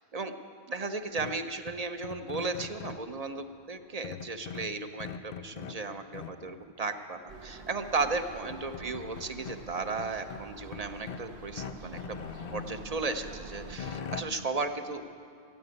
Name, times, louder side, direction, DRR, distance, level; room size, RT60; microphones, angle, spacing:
voice 1, 0.7-12.0 12.5-15.0, right 3 dB, 45° right, 8 dB, 0.6 m, -35 dB
sound 1, 1.2-3.1 4.0-5.8 6.1-6.6 7.9-8.0 8.3-9.6 10.0-11.3 11.6-12.8 13.3-14.2, left 6 dB, 55° left, 0.5 m, -41 dB
sound 2, 7.3-13.8, right 3 dB, 85° right, 1.3 m, -47 dB
14.5 x 7.6 x 9.5 m, 2.4 s
omnidirectional pair, 1.1 m